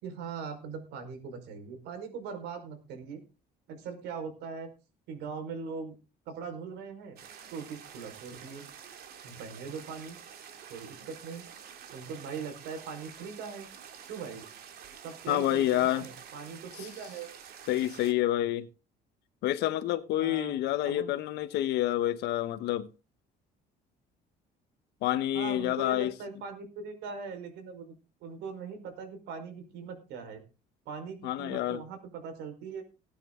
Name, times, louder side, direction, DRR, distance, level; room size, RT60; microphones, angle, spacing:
voice 1, 0.0-3.2 3.7-4.7 5.1-5.9 6.3-7.2 7.5-8.6 9.2-10.2 10.7-11.4 11.9-13.7 14.1-14.4 15.0-17.3 20.2-20.5 20.8-21.1 25.3-27.9 28.2-30.4 30.8-32.8, right 5 dB, 85° right, 5.0 m, -40 dB
sound 1, 7.2-18.1, right 8 dB, 70° right, 3.0 m, -49 dB
voice 2, 15.3-16.0 17.7-18.7 19.4-22.9 25.0-26.1 31.2-31.8, left 13 dB, 80° left, 1.3 m, -28 dB
18.5 x 9.4 x 3.9 m
cardioid pair, 110°, 17 cm